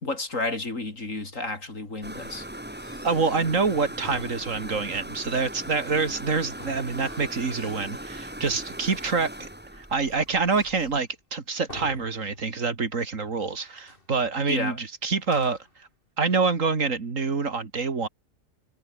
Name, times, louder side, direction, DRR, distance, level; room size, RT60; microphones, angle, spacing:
voice 1, 0.0-2.5 14.5-14.8, left 2 dB, 80° left, 4.5 m, -31 dB
sound 1, 2.0-11.0, right 1 dB, 10° right, 1.9 m, -39 dB
sound 2, 2.6-5.0 6.4-8.1 8.6-9.2 9.7-11.1 11.7-12.8 13.0-13.1 13.6-14.1 15.2-15.8, left 1 dB, 45° left, 6.6 m, -48 dB
voice 2, 3.0-9.5 9.8-15.9 16.2-18.1, right 4 dB, 85° right, 2.8 m, -26 dB
omnidirectional pair, 1.3 m